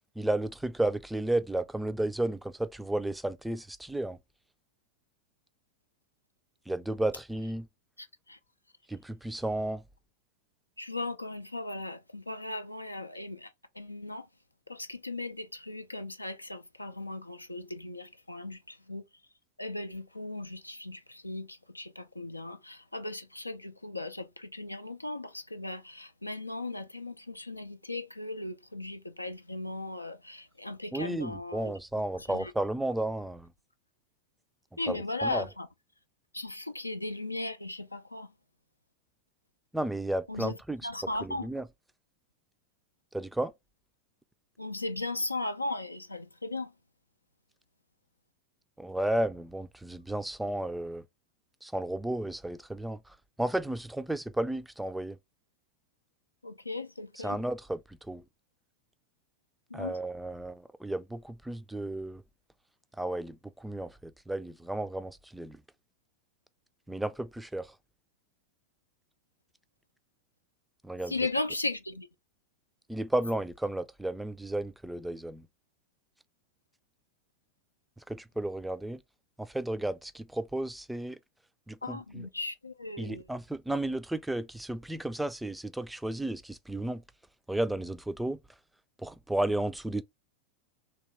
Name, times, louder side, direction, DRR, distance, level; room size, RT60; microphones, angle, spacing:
voice 1, 0.2-4.2 6.7-7.7 8.9-9.8 30.9-33.5 34.9-35.5 39.7-40.8 41.2-41.7 43.1-43.5 48.8-51.0 51.6-55.2 57.2-58.2 59.7-62.2 63.0-65.6 66.9-67.7 70.8-71.1 72.9-75.5 78.1-79.0 79.4-81.2 81.7-82.3 83.0-87.0 87.5-88.4 89.0-90.0, right 1 dB, 5° right, 0.4 m, -33 dB
voice 2, 8.0-8.4 10.8-14.3 14.7-19.0 19.6-31.7 32.3-32.5 34.8-35.7 36.3-38.3 40.3-40.6 40.8-41.5 44.6-46.7 56.4-57.4 59.7-59.9 71.1-72.1 81.8-83.3, left 2 dB, 85° left, 0.3 m, -37 dB
3.4 x 2.8 x 3.1 m
figure-of-eight pair, 90°, 0 cm